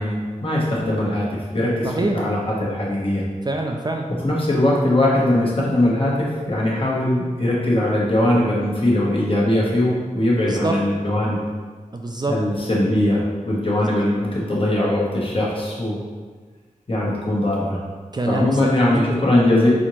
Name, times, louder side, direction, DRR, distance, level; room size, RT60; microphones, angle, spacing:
voice 1, 0.0-3.2 4.2-11.4 12.3-16.0 16.9-17.8 18.3-19.7, left 1 dB, 40° left, -5 dB, 1.1 m, -20 dB
voice 2, 1.8-2.2 3.5-4.1 10.5-10.8 11.9-12.4 13.8-13.9 18.1-19.0, right 2 dB, 30° right, 1 dB, 0.4 m, -25 dB
4.2 x 3.9 x 3.1 m, 1.5 s
wide cardioid pair, 105°, 14 cm